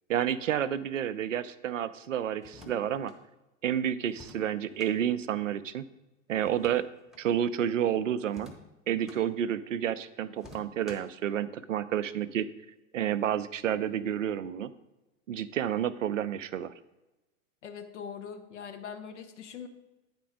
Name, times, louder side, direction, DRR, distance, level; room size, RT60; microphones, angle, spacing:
voice 1, 0.1-3.1 3.6-5.8 6.3-6.8 7.2-8.5 8.9-12.5 12.9-14.7 15.3-16.7, right 10 dB, 70° right, 15 dB, 0.5 m, -30 dB
sound 1, 2.4-3.2 4.1-4.9 6.4-7.3 8.3-9.2 10.4-11.2, left 2 dB, ahead, 1.0 m, -51 dB
voice 2, 17.6-19.7, left 7 dB, 60° left, 7 dB, 0.8 m, -42 dB
9.1 x 4.4 x 4.8 m, 1.0 s
figure-of-eight pair, 90°, 39 cm